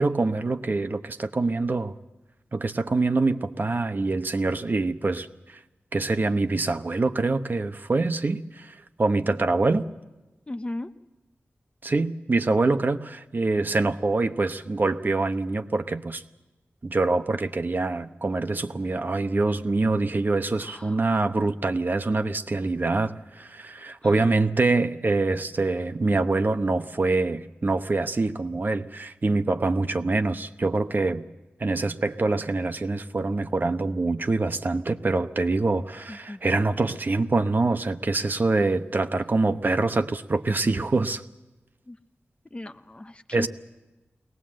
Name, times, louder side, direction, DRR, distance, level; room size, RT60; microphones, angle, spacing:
voice 1, 0.0-1.9 2.5-5.6 5.9-9.9 11.8-16.2 16.8-31.2 31.6-41.2 43.3-43.5, right 3 dB, 45° right, 8 dB, 1.0 m, -25 dB
voice 2, 10.5-10.9 20.6-21.0 24.0-24.2 36.1-36.4 38.1-38.4 41.9-42.0 42.5-43.5, left 1 dB, 25° left, 9 dB, 0.8 m, -36 dB
22.5 x 18.5 x 7.7 m, 1.1 s
wide cardioid pair, 70°, 4 cm